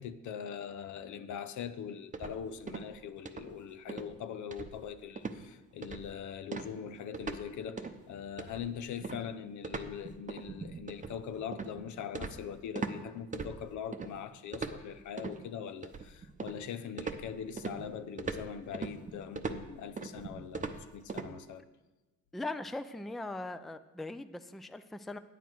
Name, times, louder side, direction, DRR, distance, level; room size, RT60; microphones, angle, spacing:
voice 1, 0.0-21.6, left 8 dB, 75° left, 0.7 m, -42 dB
sound 1, 2.1-3.0 3.2-3.6 3.9-4.1 4.5-4.9 5.2-5.4 5.8-6.2 6.5-7.5 7.8-8.0 8.4-13.0 13.3-14.1 14.5-15.4 15.8-16.7 17.0-21.3, right 4 dB, 25° right, 0.7 m, -40 dB
voice 2, 22.3-25.2, left 2 dB, ahead, 0.4 m, -40 dB
9.2 x 9.1 x 4.6 m
cardioid pair, 90°, 30 cm